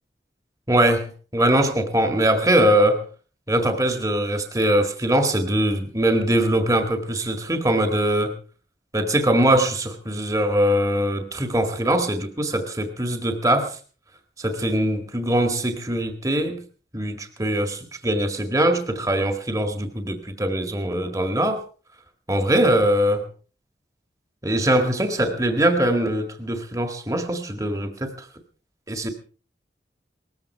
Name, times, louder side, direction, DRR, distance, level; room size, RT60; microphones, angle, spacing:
voice 1, 0.7-3.1 3.5-8.3 8.9-13.8 14.4-16.6 16.9-21.6 22.3-23.2 24.4-28.3 28.9-29.1, right 1 dB, 20° right, 6 dB, 1.7 m, -22 dB
19.5 x 15.0 x 4.5 m, 0.40 s
head